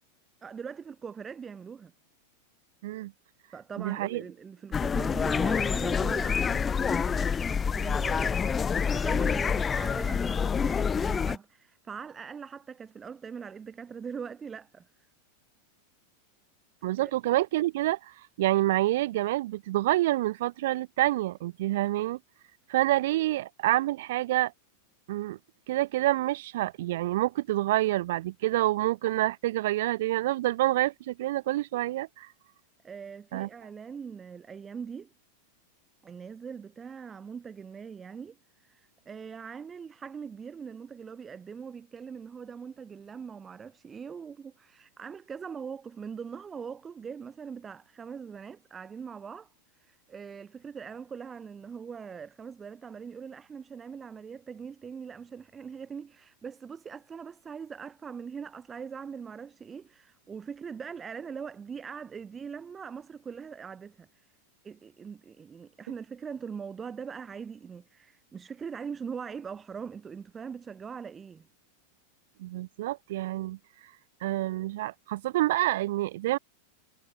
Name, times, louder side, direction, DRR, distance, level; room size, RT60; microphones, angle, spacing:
voice 1, 0.4-1.9 3.5-14.9 17.0-17.1 32.8-35.1 36.0-38.4 38.6-49.5 49.8-64.3 64.6-71.5, right 6 dB, 20° right, 3.1 m, -41 dB
voice 2, 3.8-4.2 16.8-22.2 22.7-24.5 25.1-25.4 25.7-32.3 33.3-33.5 72.4-73.6 74.2-76.4, right 16 dB, 55° right, 1.2 m, -27 dB
sound 1, 4.7-11.4, left 6 dB, 20° left, 0.9 m, -27 dB
figure-of-eight pair, 90°, 0 cm